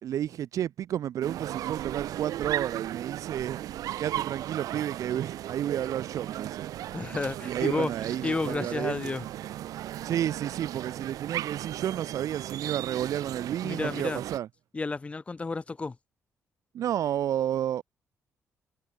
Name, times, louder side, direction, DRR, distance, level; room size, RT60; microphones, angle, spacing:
voice 1, 0.0-3.6 4.0-6.7 7.4-9.2 10.0-14.5 16.7-17.8, right 11 dB, 70° right, 0.6 m, -31 dB
sound 1, 1.2-14.4, right 13 dB, 85° right, 1.1 m, -36 dB
voice 2, 6.9-7.9 8.2-9.2 13.6-14.2 14.7-16.0, left 3 dB, 20° left, 0.5 m, -31 dB
cardioid pair, 115°, 6 cm